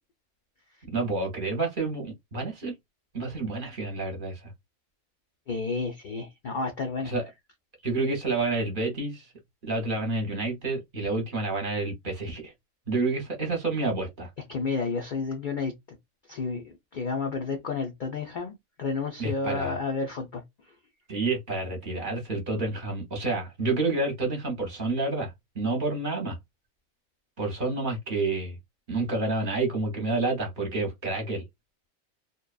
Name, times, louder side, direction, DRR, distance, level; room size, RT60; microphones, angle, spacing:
voice 1, 0.9-2.8 3.1-4.5 7.0-7.2 7.8-9.3 9.6-12.5 12.9-14.3 19.2-19.8 21.1-26.4 27.4-28.6 28.9-31.4, right 3 dB, 45° right, 0.8 m, -29 dB
voice 2, 5.5-7.1 14.5-15.7 16.3-18.5 18.8-20.4, left 4 dB, 70° left, 0.4 m, -31 dB
2.7 x 2.2 x 2.3 m
omnidirectional pair, 1.4 m